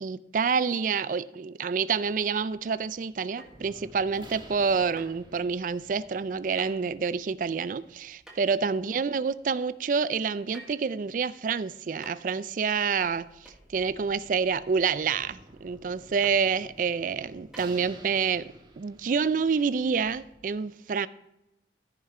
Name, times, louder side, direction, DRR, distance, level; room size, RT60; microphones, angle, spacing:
voice 1, 0.0-21.1, right 5 dB, 50° right, 0.3 m, -28 dB
sound 1, 2.0-20.4, right 1 dB, 25° right, 1.3 m, -54 dB
sound 2, 3.4-3.7 5.0-5.2 6.6-6.8 8.3-8.5 10.5-10.9 12.0-12.3 13.5-13.6 14.8-15.1 16.2-16.4 17.5-17.6, right 1 dB, ahead, 1.9 m, -48 dB
14.0 x 5.9 x 4.3 m
head